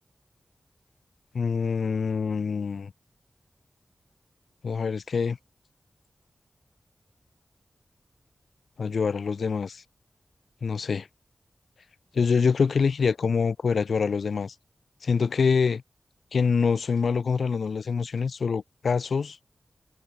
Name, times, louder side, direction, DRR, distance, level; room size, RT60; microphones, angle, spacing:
voice 1, 1.3-2.9 4.6-5.4 8.8-9.8 10.6-11.1 12.1-14.5 15.0-15.8 16.3-19.3, left 5 dB, 90° left, 5.5 m, -25 dB
open air
wide cardioid pair, 85°, 0 cm